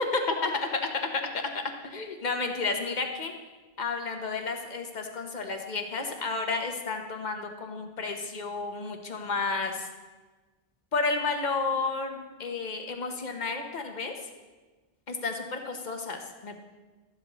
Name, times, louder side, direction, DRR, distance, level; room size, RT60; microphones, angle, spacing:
voice 1, 0.4-0.8 1.1-3.3 3.8-9.9 10.9-14.1 15.1-16.6, left 4 dB, 45° left, 4 dB, 1.2 m, -32 dB
13.5 x 11.5 x 3.1 m, 1.3 s
omnidirectional pair, 1.0 m